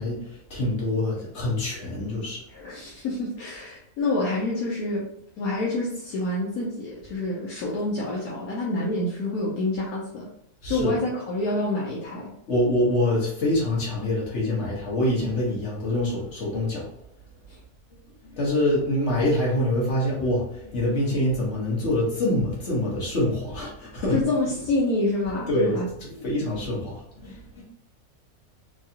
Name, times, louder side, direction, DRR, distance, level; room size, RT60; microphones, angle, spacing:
voice 1, 0.0-2.4 10.6-10.9 12.5-16.9 18.2-24.2 25.5-25.8 26.1-27.6, left 1 dB, 50° left, -4 dB, 1.5 m, -25 dB
voice 2, 2.5-5.1 5.4-10.3 10.7-12.3 17.5-17.6 24.1-25.9, left 2 dB, 75° left, -4 dB, 1.2 m, -27 dB
4.6 x 2.3 x 2.8 m, 0.77 s
omnidirectional pair, 1.6 m